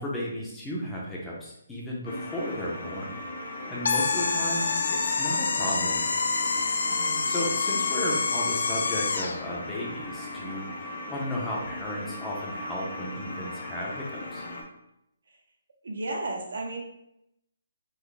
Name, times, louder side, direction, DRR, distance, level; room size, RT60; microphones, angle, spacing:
voice 1, 0.0-3.2 3.7-6.1 6.9-14.5, left 1 dB, 5° left, -5 dB, 0.5 m, -34 dB
sound 1, 2.0-14.6, left 1 dB, 85° left, 1.3 m, -38 dB
sound 2, 3.9-9.4, left 4 dB, 65° left, 0.3 m, -27 dB
voice 2, 6.9-7.3 15.8-16.8, right 2 dB, 75° right, 1 dB, 0.8 m, -34 dB
3.9 x 2.1 x 3.2 m, 0.79 s
hypercardioid pair, 170°, 0 cm